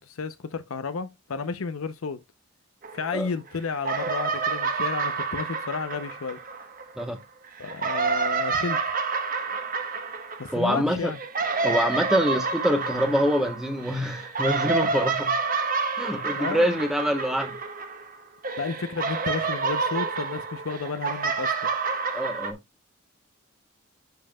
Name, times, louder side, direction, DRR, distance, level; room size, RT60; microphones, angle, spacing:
voice 1, 0.0-2.2 2.9-6.4 7.6-8.8 10.4-11.2 16.4-16.7 18.6-21.7, left 5 dB, 80° left, 0.6 m, -32 dB
sound 1, 2.8-3.5 3.8-7.0 7.6-18.2 18.4-22.5, right 4 dB, 40° right, 1.1 m, -29 dB
voice 2, 10.5-11.1 11.6-15.3 16.0-17.6 22.1-22.6, equal, ahead, 0.9 m, -25 dB
10.0 x 5.5 x 2.2 m
head